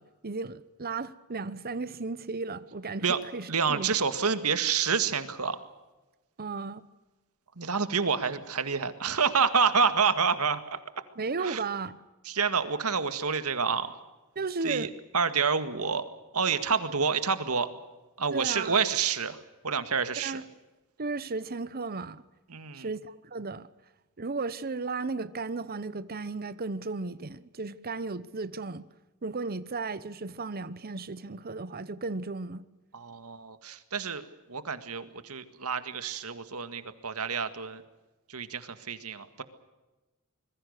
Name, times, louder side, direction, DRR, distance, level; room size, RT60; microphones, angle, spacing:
voice 1, 0.0-3.9 6.4-6.8 11.2-12.0 14.4-14.9 18.3-18.8 20.2-20.4 21.0-22.2 22.7-23.7 24.2-28.8 29.2-32.7, right 3 dB, 45° right, 0.9 m, -35 dB
voice 2, 3.5-5.6 7.6-10.8 11.4-11.6 12.2-14.0 14.6-16.0 16.3-17.7 18.2-20.4 22.5-22.9 32.9-37.8 38.3-39.4, right 5 dB, 85° right, 1.9 m, -28 dB
25.5 x 22.0 x 6.7 m
head